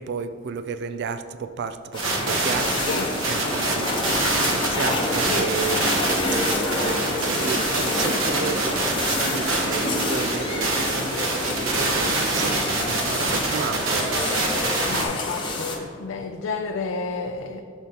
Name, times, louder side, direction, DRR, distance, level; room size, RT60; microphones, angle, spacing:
voice 1, 0.0-2.0 2.3-3.0 3.3-3.8 4.7-6.1 7.1-14.1, right 5 dB, 55° right, 10 dB, 0.3 m, -32 dB
sound 1, 1.9-15.8, left 2 dB, 25° left, 0.9 m, -28 dB
sound 2, 2.0-15.0, right 2 dB, 90° right, 1.1 m, -26 dB
voice 2, 14.9-17.6, left 4 dB, 80° left, 5 dB, 0.4 m, -30 dB
9.0 x 6.7 x 2.9 m, 2.4 s
head